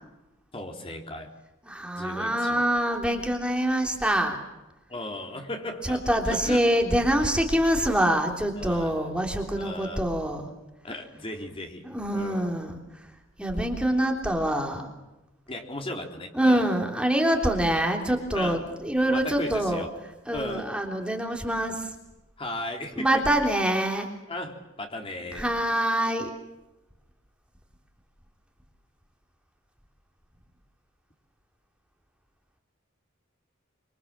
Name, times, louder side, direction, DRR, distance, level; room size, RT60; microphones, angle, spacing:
voice 1, 0.5-1.3 1.9-2.8 4.9-6.6 8.6-9.1 9.6-10.0 10.8-11.8 12.1-12.5 15.5-16.6 18.3-18.6 19.1-19.9 20.3-20.7 22.4-23.5 24.3-25.4, left 1 dB, 30° left, 3 dB, 3.7 m, -36 dB
voice 2, 1.6-4.4 5.8-10.5 11.8-13.1 13.4-14.9 16.3-19.8 20.2-21.9 23.0-24.1 25.3-26.3, right 1 dB, 5° right, 2 dB, 3.4 m, -25 dB
27.0 x 26.5 x 7.5 m, 1.0 s
head